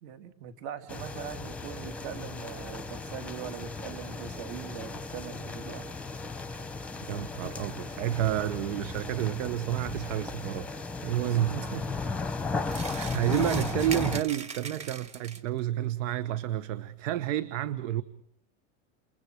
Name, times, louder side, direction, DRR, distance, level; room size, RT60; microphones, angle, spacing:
voice 1, 0.0-5.9 11.0-11.8, right 7 dB, 60° right, 2.8 m, -41 dB
sound 1, 0.9-14.2, left 4 dB, 5° left, 0.8 m, -36 dB
voice 2, 7.0-10.8 11.0-11.6 12.9-18.0, right 13 dB, 85° right, 1.3 m, -30 dB
sound 2, 12.7-15.6, right 5 dB, 20° right, 1.2 m, -40 dB
29.0 x 28.0 x 4.7 m
supercardioid pair, 170°, 37 cm